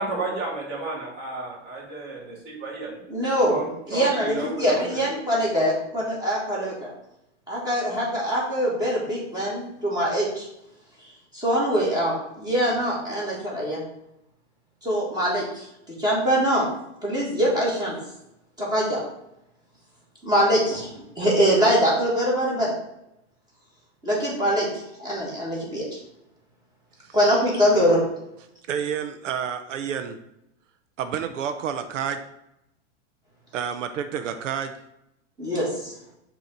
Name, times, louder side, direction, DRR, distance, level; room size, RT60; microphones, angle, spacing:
voice 1, 0.0-3.0 3.5-5.0, right 2 dB, 30° right, -3 dB, 2.0 m, -32 dB
voice 2, 3.1-3.5 3.9-6.9 7.5-10.5 11.0-13.8 14.8-15.7 16.0-16.6 17.0-18.0 18.6-19.0 20.2-22.7 24.0-24.7 25.0-25.8 27.1-28.0 35.4-35.9, equal, 10° right, -5 dB, 1.4 m, -23 dB
voice 3, 28.7-30.2 31.0-32.2 33.5-34.7, right 8 dB, 85° right, 8 dB, 0.7 m, -29 dB
6.8 x 3.0 x 5.1 m, 0.83 s
supercardioid pair, 155°, 36 cm